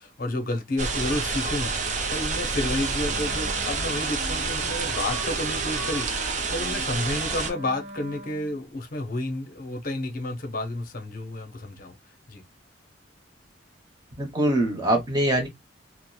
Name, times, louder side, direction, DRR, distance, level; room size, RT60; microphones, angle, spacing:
voice 1, 0.0-11.9 12.3-12.4, left 1 dB, 50° left, 0.6 m, -31 dB
sound 1, 0.8-7.5, right 4 dB, 40° right, 0.5 m, -28 dB
Wind instrument woodwind instrument, 3.0-8.6, right 2 dB, 80° right, 0.9 m, -40 dB
voice 2, 14.2-15.5, right 1 dB, 20° right, 0.8 m, -23 dB
2.8 x 2.0 x 2.2 m
head